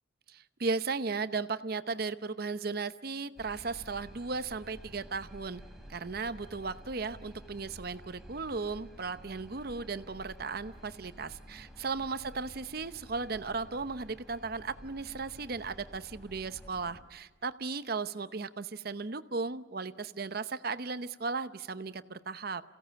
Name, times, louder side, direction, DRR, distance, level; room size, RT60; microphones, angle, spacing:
voice 1, 0.3-5.6 5.9-22.6, right 4 dB, 55° right, 12 dB, 0.8 m, -36 dB
sound 1, 3.4-17.0, equal, ahead, 3.4 m, -51 dB
28.5 x 16.5 x 8.9 m, 1.3 s
head